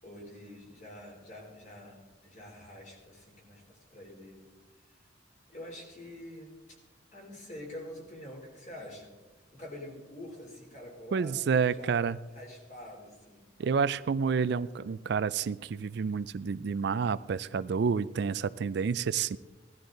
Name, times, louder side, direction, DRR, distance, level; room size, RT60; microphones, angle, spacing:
voice 1, 0.0-4.4 5.5-6.6 7.1-9.2 9.5-12.0 12.3-13.4, left 1 dB, 40° left, -1 dB, 3.5 m, -46 dB
voice 2, 11.1-12.2 13.6-19.4, right 6 dB, 60° right, 16 dB, 0.4 m, -29 dB
17.0 x 12.5 x 3.9 m, 1.2 s
head